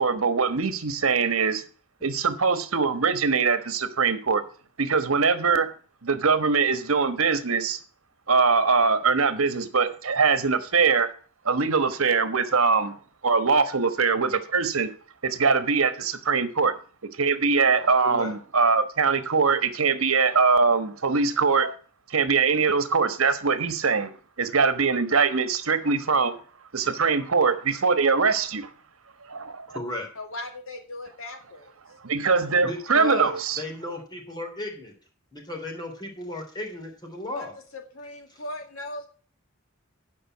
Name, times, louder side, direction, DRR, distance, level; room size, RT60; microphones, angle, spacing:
voice 1, 0.0-1.6 2.0-4.4 4.8-5.7 6.0-7.8 8.3-11.1 11.4-13.0 13.2-14.9 15.2-16.7 17.2-21.7 22.1-24.1 24.4-26.4 26.7-28.7 29.3-29.7 32.0-33.6, right 5 dB, 80° right, 1.2 m, -22 dB
voice 2, 18.0-18.4 29.7-30.1 32.6-34.9 35.3-37.5, left 1 dB, 20° left, 3.5 m, -34 dB
voice 3, 30.2-31.7 37.3-37.5 37.7-39.1, left 2 dB, 75° left, 2.1 m, -38 dB
10.0 x 5.4 x 7.9 m
head